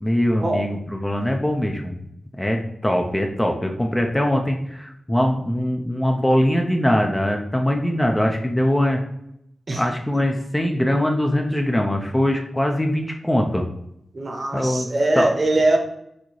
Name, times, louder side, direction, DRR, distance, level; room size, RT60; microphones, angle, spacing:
voice 1, 0.0-2.0 2.4-9.0 9.7-13.6 14.5-14.9 15.2-15.3, left 1 dB, 10° left, 2 dB, 0.4 m, -22 dB
voice 2, 14.1-15.8, right 2 dB, 40° right, 3 dB, 0.8 m, -21 dB
6.1 x 2.8 x 3.1 m, 0.78 s
wide cardioid pair, 145°, 0 cm